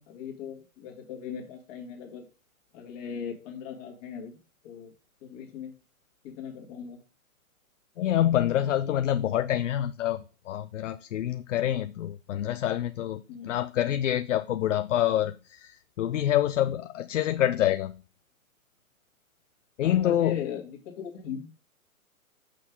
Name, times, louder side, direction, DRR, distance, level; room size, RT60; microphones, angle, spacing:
voice 1, 0.0-2.2 2.7-4.4 4.6-4.9 5.2-5.7 6.2-7.0 13.3-13.6 19.8-21.5, left 7 dB, 30° left, 1 dB, 1.9 m, -39 dB
voice 2, 8.0-18.0 19.8-20.5, left 11 dB, 60° left, 10 dB, 0.5 m, -27 dB
6.5 x 5.5 x 3.7 m, 0.35 s
hypercardioid pair, 150°, 43 cm